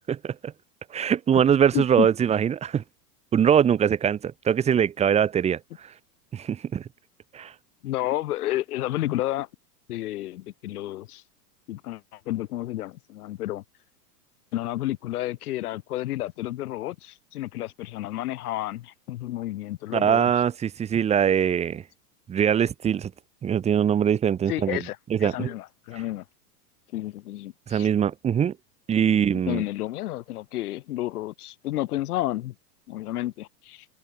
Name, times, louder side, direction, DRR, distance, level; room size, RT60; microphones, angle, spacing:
voice 1, 0.1-0.5 0.9-2.8 3.3-5.9 6.3-6.9 7.3-7.5 19.9-21.8 22.3-23.1 23.4-24.8 25.1-25.5 27.7-28.6 28.9-29.6, right 8 dB, 15° right, 1.4 m, -22 dB
voice 2, 1.7-2.1 7.8-9.5 9.9-11.2 11.7-13.6 14.5-20.3 24.5-26.2 26.9-27.9 29.4-32.5 32.9-33.9, left 15 dB, 65° left, 2.5 m, -31 dB
open air
supercardioid pair, 160°, 48 cm